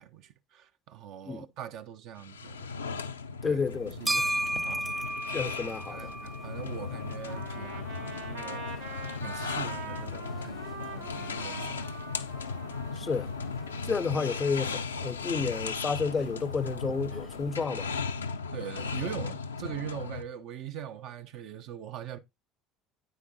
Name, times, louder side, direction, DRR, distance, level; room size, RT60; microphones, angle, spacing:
voice 1, 0.0-2.7 3.4-4.3 4.6-4.9 5.6-8.9 9.2-12.2 18.5-22.2, right 10 dB, 55° right, 0.7 m, -42 dB
sound 1, 2.2-20.2, left 5 dB, 80° left, 0.5 m, -37 dB
voice 2, 3.4-3.9 5.3-6.1 13.0-13.3 13.9-17.9, left 4 dB, 25° left, 0.5 m, -31 dB
sound 2, 3.7-17.5, right 1 dB, 15° right, 0.8 m, -39 dB
Trumpet, 7.3-14.4, right 3 dB, 85° right, 2.5 m, -44 dB
9.1 x 8.2 x 2.7 m
figure-of-eight pair, 65°, 0 cm